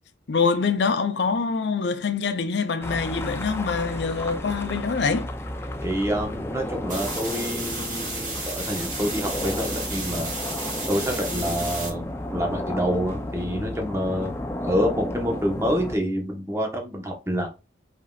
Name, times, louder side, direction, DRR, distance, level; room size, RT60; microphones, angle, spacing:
voice 1, 0.3-5.3, left 5 dB, 70° left, 0.5 m, -25 dB
sound 1, 2.8-16.0, left 1 dB, 15° left, 0.4 m, -33 dB
voice 2, 5.8-10.3 10.9-14.3 14.6-17.5, equal, 15° right, 1.0 m, -27 dB
sound 2, 6.9-11.9, right 2 dB, 45° right, 2.0 m, -33 dB
5.3 x 3.7 x 2.3 m
head